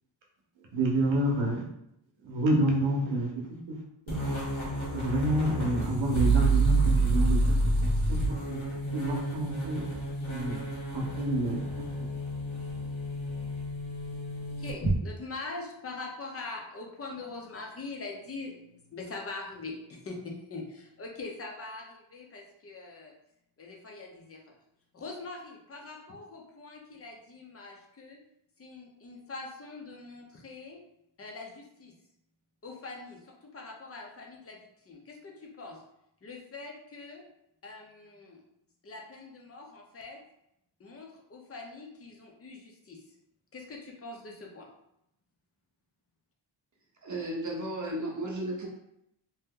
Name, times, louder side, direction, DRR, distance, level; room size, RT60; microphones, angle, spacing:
voice 1, 0.7-1.6 2.2-3.8 4.1-4.4 4.9-8.6 8.9-9.8 10.3-10.6 10.9-11.9, right 1 dB, 70° right, -1 dB, 0.8 m, -29 dB
sound 1, 4.1-15.0, right 2 dB, 80° left, 1.3 m, -29 dB
voice 2, 14.6-23.1 23.6-24.6 24.9-28.2 28.6-30.8 31.2-31.9 32.6-35.8 36.2-37.2 37.6-38.4 38.8-40.2 40.8-43.0 43.5-44.7, left 3 dB, 30° left, 0 dB, 0.6 m, -43 dB
voice 3, 47.0-48.7, right 1 dB, 40° right, -2 dB, 0.7 m, -34 dB
2.8 x 2.1 x 3.6 m, 0.80 s
wide cardioid pair, 155°, 47 cm